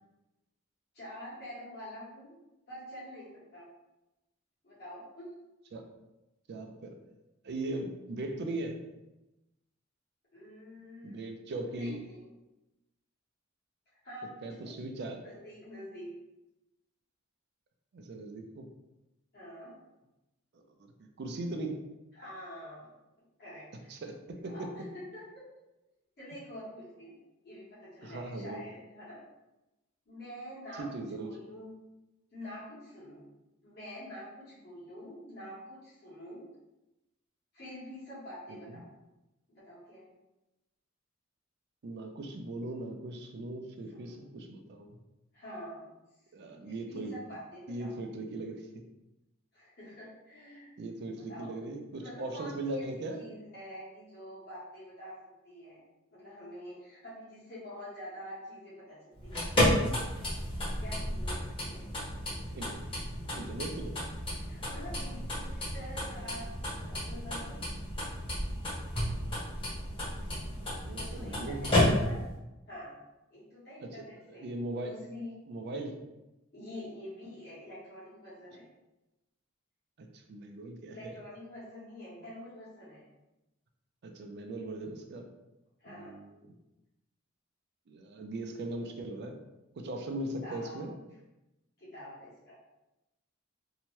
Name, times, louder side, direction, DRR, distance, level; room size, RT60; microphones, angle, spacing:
voice 1, 0.9-2.4 2.7-3.7 4.6-5.2 10.3-11.2 11.7-12.3 14.0-14.7 15.2-16.1 19.3-19.7 22.1-22.9 23.4-23.9 24.4-25.5 26.2-27.1 27.4-29.2 30.1-30.9 31.2-31.7 32.3-33.3 33.6-36.5 37.5-38.9 39.5-40.1 43.9-44.2 45.3-45.9 46.6-48.0 49.5-50.7 51.1-51.5 52.0-55.8 56.1-59.5 60.8-61.8 64.3-66.5 66.8-67.6 70.9-72.2 72.7-73.0 73.3-74.5 74.8-75.3 76.5-78.7 80.9-83.0 85.8-86.2 90.4-90.9 91.8-92.5, equal, 55° left, -9 dB, 1.1 m, -46 dB
voice 2, 6.5-6.9 7.4-8.8 11.0-12.0 14.4-15.2 17.9-18.7 21.0-21.8 23.9-24.7 28.0-28.6 30.8-31.4 38.5-38.8 41.8-45.0 46.3-47.1 47.7-48.7 50.8-53.2 62.5-62.8 63.4-64.0 70.6-71.9 73.8-73.9 74.3-74.9 75.5-76.0 80.0-81.1 84.0-85.3 85.9-86.4 87.9-89.4 89.8-90.9, right 2 dB, 55° right, 5 dB, 0.4 m, -39 dB
sound 1, 59.2-72.3, left 1 dB, 25° left, 0.9 m, -32 dB
2.7 x 2.2 x 3.0 m, 0.98 s
head